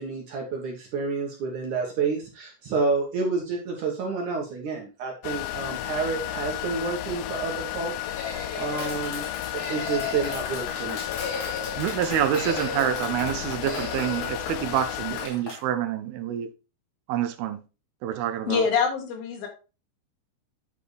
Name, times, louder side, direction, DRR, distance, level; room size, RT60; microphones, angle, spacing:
voice 1, 0.0-7.9 8.2-9.3 9.5-11.0, right 4 dB, 60° right, 2.2 m, -29 dB
sound 1, 5.2-15.3, left 15 dB, 85° left, 2.8 m, -33 dB
sound 2, 8.0-9.0 9.5-10.5 11.0-11.8 12.3-13.1 13.6-14.3, left 4 dB, 25° left, 4.7 m, -35 dB
Clapping, 8.8-15.6, left 3 dB, 50° left, 3.1 m, -39 dB
voice 2, 11.8-16.5 17.1-17.6 18.0-18.7, right 10 dB, 80° right, 2.3 m, -27 dB
voice 3, 18.5-19.5, left 6 dB, 65° left, 3.1 m, -24 dB
10.5 x 5.5 x 3.3 m
omnidirectional pair, 5.0 m